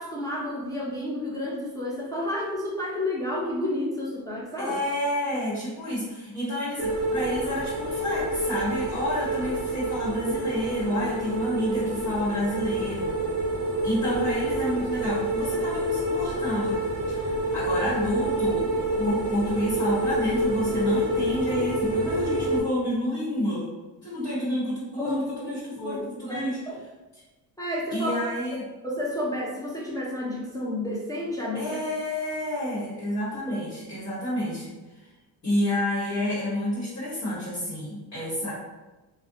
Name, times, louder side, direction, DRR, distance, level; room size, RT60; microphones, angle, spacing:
voice 1, 0.0-4.8 24.2-24.3 25.0-25.5 25.8-26.7 27.6-31.7 33.5-33.6, left 1 dB, 10° left, -5 dB, 0.4 m, -31 dB
voice 2, 4.6-13.1 13.8-16.8 17.1-18.7 19.0-23.7 24.0-26.9 27.9-28.7 31.5-34.7 35.4-38.5, left 1 dB, 40° left, -9 dB, 1.1 m, -29 dB
sound 1, 6.8-22.6, right 1 dB, 30° right, 0.7 m, -28 dB
2.4 x 2.1 x 2.6 m, 1.1 s
supercardioid pair, 70°, 45 cm